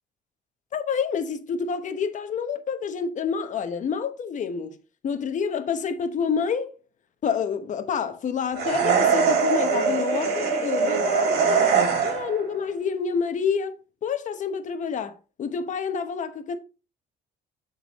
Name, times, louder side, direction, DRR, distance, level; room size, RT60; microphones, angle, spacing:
voice 1, 0.7-4.8 5.0-6.7 7.2-11.7 12.0-13.8 14.0-16.6, left 6 dB, 45° left, 1.0 m, -28 dB
sound 1, 8.6-12.4, right 5 dB, 70° right, 2.3 m, -22 dB
11.0 x 4.0 x 3.0 m
cardioid pair, 110°, 17 cm